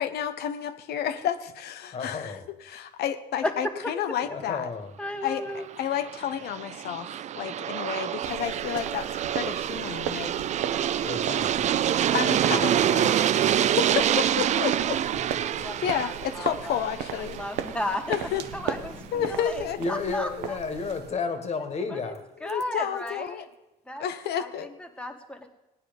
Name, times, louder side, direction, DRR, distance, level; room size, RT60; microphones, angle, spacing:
voice 1, 0.0-2.3 2.7-4.7 5.2-10.3 12.1-13.2 13.4-15.0 15.6-17.4 18.1-18.4 19.1-19.8 22.4-23.5 24.0-24.7, left 9 dB, 70° left, 9 dB, 1.0 m, -31 dB
voice 2, 1.9-2.5 4.2-4.9 11.0-11.8 13.4-13.8 18.3-18.6 18.9-19.2 19.8-22.2, left 4 dB, 40° left, 7 dB, 2.0 m, -33 dB
voice 3, 5.0-5.7 15.4-16.9 17.2-18.0 18.5-20.6 21.9-22.1 22.4-23.4 23.9-24.0 24.4-24.5 24.8-25.5, left 1 dB, 5° left, 4 dB, 1.8 m, -34 dB
Aircraft, 5.7-18.5, right 10 dB, 45° right, 0.4 m, -27 dB
sound 1, 8.2-21.1, right 9 dB, 90° right, 1.0 m, -38 dB
17.5 x 9.7 x 5.4 m, 0.97 s
cardioid pair, 110°, 17 cm